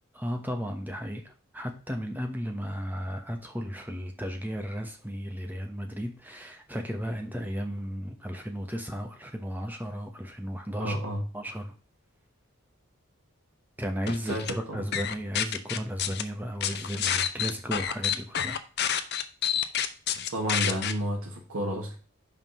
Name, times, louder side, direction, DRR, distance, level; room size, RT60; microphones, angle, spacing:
voice 1, 0.1-11.0 11.3-11.7 13.8-18.6, equal, 10° right, 4 dB, 1.1 m, -34 dB
voice 2, 10.8-11.2 14.2-14.8 20.3-22.0, equal, 85° right, -1 dB, 1.6 m, -31 dB
sound 1, 14.1-14.5 14.9-16.2 16.6-20.9, left 9 dB, 50° left, 0.7 m, -28 dB
5.7 x 5.0 x 6.1 m, 0.38 s
head